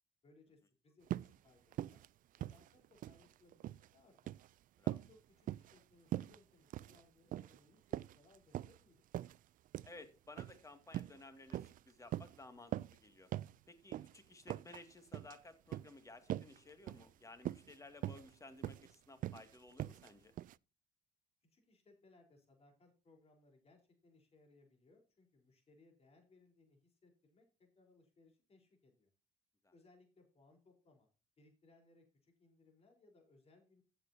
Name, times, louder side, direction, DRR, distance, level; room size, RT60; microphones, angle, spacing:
voice 1, 0.2-2.0 2.4-4.3 4.9-9.0 21.4-29.1 29.7-31.1 31.4-33.8, left 2 dB, 35° left, 3 dB, 4.2 m, -68 dB
sound 1, 1.1-1.4 1.7-2.1 2.3-3.2 3.5-3.9 4.2-4.5 4.9-5.1 5.5-5.8 6.1-6.4 6.7-7.0 7.3-7.6 7.9-8.8 9.1-9.4 9.7-9.9 10.4-10.6 10.9-11.2 11.5-11.8 12.1-12.4 12.7-13.0 13.3-13.5 13.9-14.1 14.5-14.8 15.1-15.4 15.7-15.9 16.3-16.6 16.9-17.1 17.4-17.7 18.0-18.3 18.6-18.9 19.2-19.4 19.8-20.1 20.4-20.5, right 13 dB, 55° right, 0.4 m, -41 dB
voice 2, 9.8-13.3 13.7-20.3 29.6-29.7, left 2 dB, 20° left, 8 dB, 2.3 m, -56 dB
15.0 x 7.7 x 2.8 m, 0.32 s
cardioid pair, 110°, 17 cm